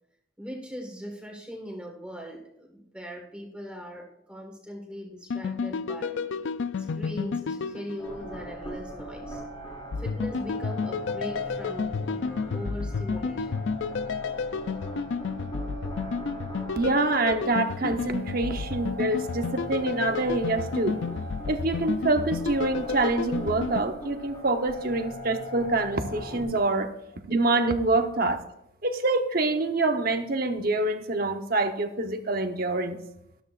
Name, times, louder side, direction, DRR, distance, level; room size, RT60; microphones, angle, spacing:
voice 1, 0.4-6.2 6.8-9.4 10.0-13.7, equal, 5° right, 0 dB, 1.6 m, -40 dB
sound 1, 5.3-8.6 9.9-23.8, left 5 dB, 65° left, 0.4 m, -31 dB
sound 2, 8.0-26.4, equal, 30° left, 2.5 m, -40 dB
voice 2, 16.8-21.0 21.5-26.9 27.3-28.4 28.8-33.0, right 2 dB, 45° right, 6 dB, 1.0 m, -26 dB
13.0 x 12.5 x 2.5 m, 0.78 s
head